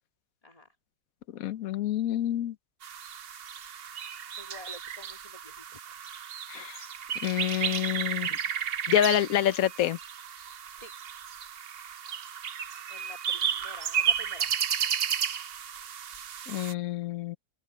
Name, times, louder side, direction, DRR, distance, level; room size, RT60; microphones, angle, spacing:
voice 1, 1.3-2.5 6.5-6.8 7.2-8.3 8.9-10.0 16.5-17.4, left 11 dB, 65° left, 1.1 m, -27 dB
sound 1, 2.8-16.7, right 8 dB, 55° right, 0.7 m, -33 dB
voice 2, 4.4-5.8 10.8-10.9 12.1-12.2 12.7-14.5 14.9-15.0, left 1 dB, 20° left, 2.6 m, -49 dB
open air
omnidirectional pair, 1.8 m